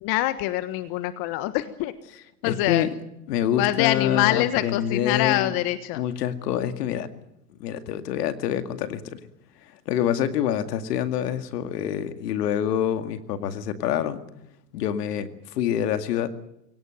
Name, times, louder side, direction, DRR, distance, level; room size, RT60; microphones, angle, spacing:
voice 1, 0.0-1.9 2.4-2.9 3.6-6.0, left 15 dB, 45° left, 12 dB, 1.4 m, -25 dB
voice 2, 2.4-2.9 3.3-5.5 5.9-7.1 7.6-9.2 9.6-14.2 14.7-16.3, left 10 dB, 70° left, 9 dB, 2.2 m, -26 dB
22.5 x 18.0 x 9.0 m, 0.82 s
hypercardioid pair, 110°, 49 cm